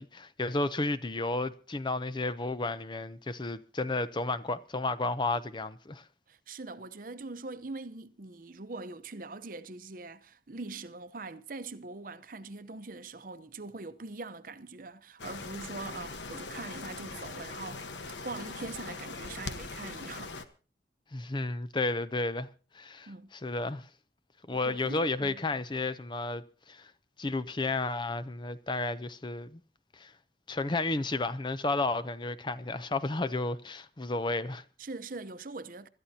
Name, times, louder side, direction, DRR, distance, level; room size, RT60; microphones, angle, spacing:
voice 1, 0.0-6.0 21.1-22.5 22.7-23.9 24.5-26.9 27.2-29.6 29.9-30.1 30.5-34.6, left 2 dB, 25° left, 0.6 m, -32 dB
voice 2, 6.3-17.9 18.2-20.3 23.1-23.3 24.5-25.4 34.8-35.9, right 3 dB, 50° right, 0.8 m, -42 dB
sound 1, 15.2-20.4, left 3 dB, 90° left, 1.3 m, -41 dB
25.5 x 13.0 x 2.8 m
head